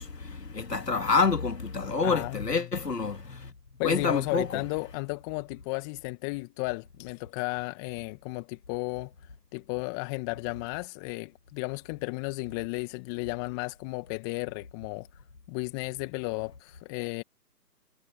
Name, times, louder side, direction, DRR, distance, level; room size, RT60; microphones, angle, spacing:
voice 1, 0.0-3.5 3.8-4.6, left 4 dB, 70° left, 2.8 m, -28 dB
voice 2, 2.0-2.5 3.8-9.1 9.5-15.1 15.5-17.2, left 29 dB, 15° left, 1.6 m, -34 dB
figure-of-eight pair, 145°, 49 cm